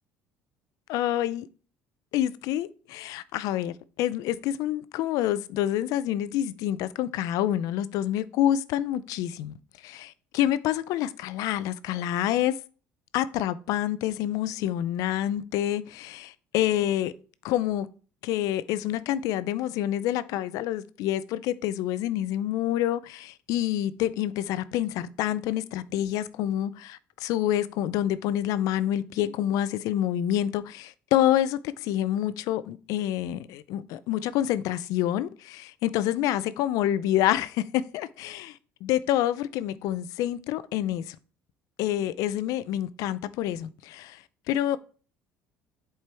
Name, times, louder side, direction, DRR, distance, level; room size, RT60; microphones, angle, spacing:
voice 1, 0.9-1.5 2.1-9.5 9.8-12.6 13.1-17.1 17.4-17.9 18.2-41.2 41.8-44.2 44.5-44.8, left 12 dB, 70° left, 0.4 m, -27 dB
8.0 x 4.5 x 3.4 m
supercardioid pair, 90°, 6 cm